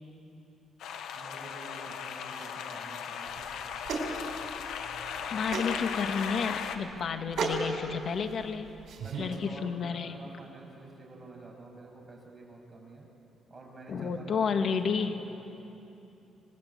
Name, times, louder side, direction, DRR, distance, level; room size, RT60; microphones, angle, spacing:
sound 1, 0.8-6.8, left 7 dB, 80° left, 1.6 m, -37 dB
voice 1, 1.1-3.5 9.0-13.1 13.5-15.3, right 2 dB, 25° right, -1 dB, 7.8 m, -48 dB
sound 2, 3.3-9.4, right 3 dB, 65° right, 4.3 m, -37 dB
voice 2, 5.3-8.7 9.2-10.1 13.9-15.2, left 6 dB, 55° left, 7 dB, 1.9 m, -31 dB
26.0 x 21.0 x 9.0 m, 2.9 s
cardioid pair, 90°, 0 cm